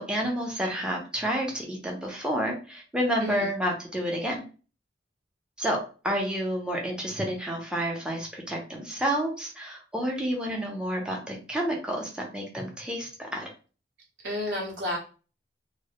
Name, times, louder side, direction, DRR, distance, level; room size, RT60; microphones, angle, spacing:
voice 1, 0.0-4.4 5.6-5.8 6.0-13.5, equal, 5° right, -1 dB, 0.5 m, -30 dB
voice 2, 14.2-15.0, left 1 dB, 70° right, -2 dB, 0.9 m, -31 dB
2.1 x 2.0 x 2.8 m, 0.36 s
head